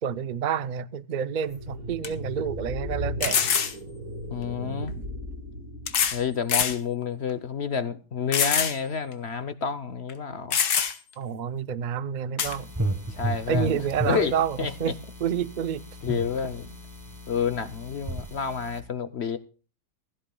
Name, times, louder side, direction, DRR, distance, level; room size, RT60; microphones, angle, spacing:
voice 1, 0.0-3.5 11.2-12.7 13.5-14.9 15.2-15.8, right 8 dB, 85° right, 0.4 m, -29 dB
sound 1, 1.4-1.5 2.0-2.1 3.2-3.8 4.9-5.0 5.9-6.2 6.5-6.8 7.3-7.4 8.3-8.8 9.1-9.2 10.1-10.2 10.5-11.1 12.4-12.6, left 7 dB, 75° left, 1.7 m, -24 dB
sound 2, 1.5-6.3, equal, 45° right, 2.4 m, -36 dB
voice 2, 4.3-4.9 6.1-10.6 13.1-13.7 14.0-14.9 16.0-16.8 17.3-19.4, left 6 dB, 55° left, 0.8 m, -29 dB
sound 3, 12.4-18.8, right 1 dB, 15° right, 1.2 m, -34 dB
16.0 x 16.0 x 2.2 m
omnidirectional pair, 1.7 m